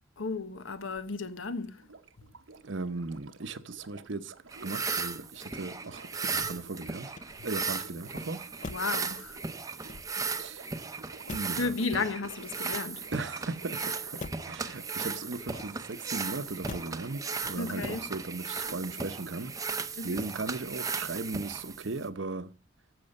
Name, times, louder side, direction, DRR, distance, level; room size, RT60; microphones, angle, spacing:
voice 1, 0.2-1.8 8.7-9.4 9.9-10.0 11.6-13.1 17.5-18.0 20.0-20.2, left 4 dB, 85° left, 1.2 m, -33 dB
Sink (filling or washing), 1.8-19.6 20.8-20.9, right 3 dB, 90° right, 1.1 m, -53 dB
voice 2, 2.6-4.3 4.6-8.4 10.4-10.7 11.3-11.8 13.1-14.2 14.5-19.6 20.0-22.5, right 3 dB, 70° right, 0.8 m, -37 dB
sound 1, 4.5-22.1, right 5 dB, 15° right, 0.6 m, -36 dB
Motor vehicle (road), 7.0-7.8 8.6-9.1 9.7-10.4 11.3-11.7 12.5-13.3 14.2-14.6 15.5-16.1 16.7-17.1 17.4-17.9, left 3 dB, 40° left, 0.5 m, -44 dB
14.0 x 6.9 x 5.4 m
head